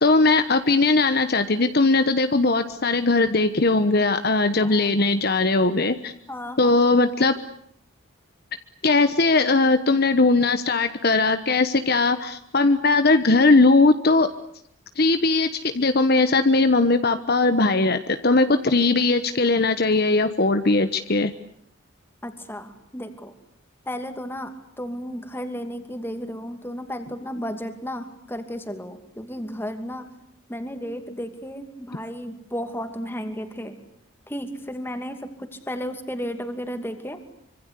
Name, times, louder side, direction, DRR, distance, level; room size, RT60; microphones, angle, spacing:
voice 1, 0.0-6.1 6.6-7.3 8.8-14.3 15.0-15.5 15.7-21.3, left 3 dB, 50° left, 9 dB, 1.1 m, -19 dB
voice 2, 6.3-6.7 22.2-23.3 23.9-24.5 24.8-30.0 30.5-33.8 34.3-37.2, equal, 10° left, 7 dB, 2.6 m, -33 dB
25.5 x 25.0 x 8.4 m, 0.70 s
head